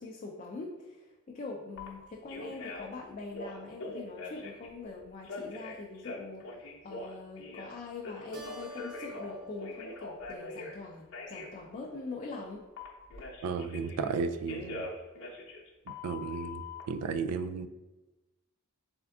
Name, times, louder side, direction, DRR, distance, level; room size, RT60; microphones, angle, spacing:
voice 1, 0.0-6.5 6.8-12.6, left 3 dB, 35° left, -2 dB, 0.4 m, -43 dB
Telephone, 1.8-1.9 2.3-2.9 3.3-4.7 5.2-7.7 8.0-10.8 11.1-11.5 12.8-14.1 14.5-16.8, left 2 dB, 60° left, 0.8 m, -42 dB
Keyboard (musical), 8.3-11.2, left 1 dB, 40° right, 0.7 m, -49 dB
voice 2, 13.4-14.9 16.0-17.7, right 5 dB, 85° right, 14 dB, 0.3 m, -34 dB
3.5 x 3.5 x 3.5 m, 1.1 s
head